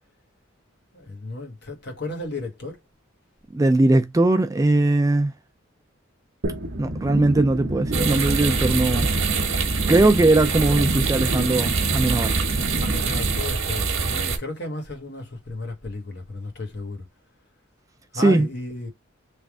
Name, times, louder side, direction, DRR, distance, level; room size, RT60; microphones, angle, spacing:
voice 1, 0.9-2.8 12.8-17.0 18.1-18.9, left 2 dB, 55° left, 1.4 m, -33 dB
voice 2, 3.5-5.3 6.8-9.1 9.9-12.3 18.1-18.5, right 2 dB, 15° right, 0.3 m, -20 dB
sound 1, 6.4-13.4, right 1 dB, 55° right, 0.8 m, -29 dB
sound 2, 7.9-14.4, right 4 dB, 85° right, 1.1 m, -25 dB
3.5 x 2.4 x 3.5 m
head